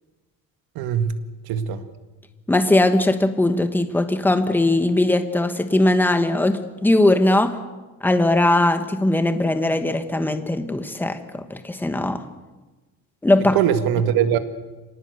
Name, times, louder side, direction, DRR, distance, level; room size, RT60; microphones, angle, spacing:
voice 1, 0.8-1.1 1.5-1.8 13.5-14.4, right 9 dB, 80° right, 9 dB, 2.0 m, -21 dB
voice 2, 2.5-7.6 8.0-12.2 13.2-13.6, left 1 dB, 5° left, 8 dB, 1.2 m, -19 dB
26.0 x 18.5 x 8.1 m, 1.2 s
cardioid pair, 180°, 35 cm